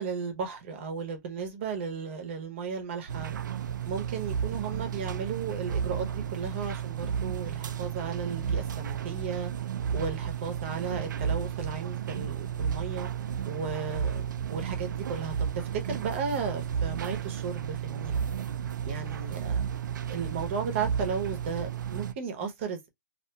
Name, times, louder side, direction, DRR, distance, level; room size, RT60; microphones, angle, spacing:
voice 1, 0.0-3.3 3.8-9.5 9.9-13.1 13.5-18.2 18.8-19.6 20.1-22.9, right 5 dB, 40° right, 0.8 m, -35 dB
sound 1, 3.1-22.1, right 8 dB, 85° right, 0.4 m, -33 dB
2.7 x 2.5 x 2.2 m
hypercardioid pair, 155°, 10 cm